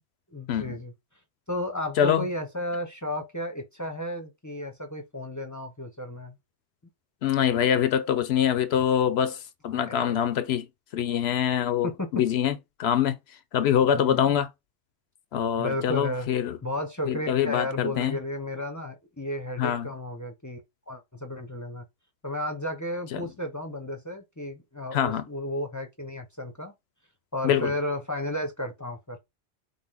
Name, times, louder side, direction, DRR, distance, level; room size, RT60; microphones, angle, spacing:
voice 1, 0.3-0.9 1.5-6.3 9.7-10.2 11.8-12.1 13.9-14.3 15.6-16.3 16.6-20.6 20.9-21.9 22.2-26.7 27.3-29.2, left 1 dB, 20° left, 0.6 m, -33 dB
voice 2, 7.2-10.7 10.9-13.1 13.5-14.5 15.3-16.6 17.1-18.2 19.6-19.9 23.1-23.2 24.9-25.2 27.4-27.7, left 9 dB, 70° left, 0.8 m, -24 dB
5.4 x 2.1 x 3.5 m
omnidirectional pair, 1.2 m